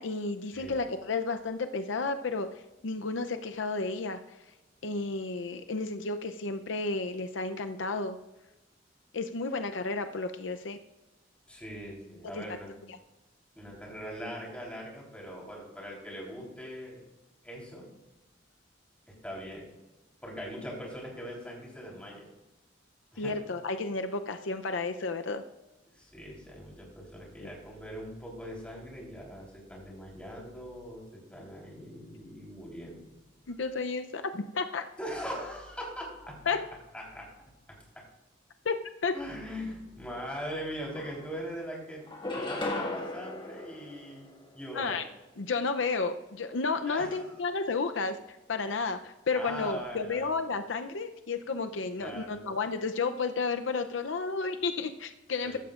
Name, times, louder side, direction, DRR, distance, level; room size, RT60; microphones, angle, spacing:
voice 1, 0.0-2.5 2.8-4.2 4.8-8.2 9.1-10.8 12.3-12.4 23.2-25.4 27.4-27.5 33.5-34.9 36.5-36.6 38.6-39.1 44.7-45.0 45.4-55.6, left 4 dB, 85° left, 8 dB, 0.6 m, -32 dB
voice 2, 11.5-12.7 13.6-17.0 17.4-17.9 19.1-19.7 20.2-22.3 23.1-23.3 25.9-33.2 35.0-36.5 36.9-37.3 37.7-38.1 39.1-42.0 42.4-44.3 44.5-45.0 46.9-47.4 49.3-50.3 52.0-52.4 55.4-55.6, equal, 5° left, -3 dB, 3.8 m, -41 dB
sound 1, 40.4-40.5 40.8-41.6 42.1-44.7, left 2 dB, 25° left, 1.7 m, -37 dB
15.0 x 12.5 x 2.5 m, 1.0 s
head